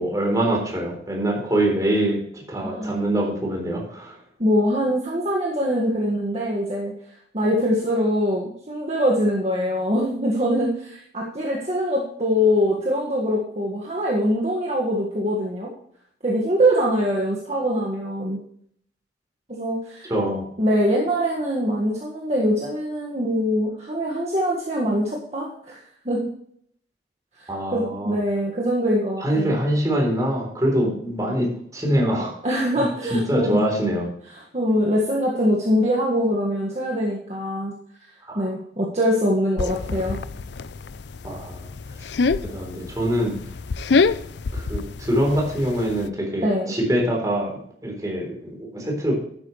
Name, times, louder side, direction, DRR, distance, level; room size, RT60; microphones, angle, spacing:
voice 1, 0.0-4.2 20.1-20.5 27.5-28.2 29.2-32.3 32.8-34.1 38.3-38.5 41.2-41.7 42.4-43.3 44.5-47.5 47.8-49.2, right 1 dB, 20° right, -1 dB, 3.7 m, -24 dB
voice 2, 2.6-3.2 4.4-6.9 7.3-15.7 16.2-18.4 19.5-20.1 20.6-25.8 26.1-26.3 27.4-29.6 32.4-33.7 34.3-37.7 38.4-40.2 46.4-46.8, equal, 40° right, -3 dB, 1.8 m, -23 dB
sound 1, 39.6-46.1, left 4 dB, 80° left, 0.5 m, -26 dB
12.0 x 9.8 x 3.2 m, 0.65 s
head